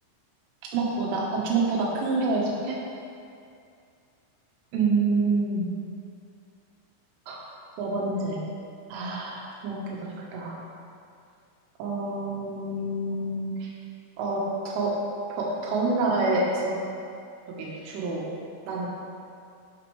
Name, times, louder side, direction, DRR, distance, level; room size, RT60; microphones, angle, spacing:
voice 1, 0.7-2.8 4.7-5.7 7.3-7.4 7.8-8.4 8.9-10.6 11.8-13.7 14.2-15.0 15.3-16.8 17.6-18.3 18.7-18.9, right 3 dB, 80° right, -4 dB, 3.6 m, -27 dB
13.5 x 6.2 x 3.2 m, 2.5 s
omnidirectional pair, 5.8 m